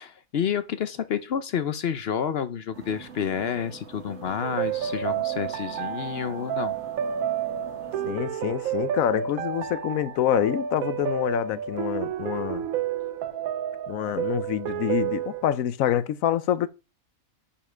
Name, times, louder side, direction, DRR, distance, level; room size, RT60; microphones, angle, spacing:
voice 1, 0.0-6.8, left 8 dB, 60° left, 0.7 m, -29 dB
sound 1, 2.7-8.1, right 5 dB, 50° right, 1.9 m, -44 dB
sound 2, 4.4-15.5, right 9 dB, 80° right, 1.1 m, -30 dB
voice 2, 8.1-12.7 13.9-16.7, left 11 dB, 75° left, 1.0 m, -26 dB
7.1 x 5.4 x 5.0 m
omnidirectional pair, 1.5 m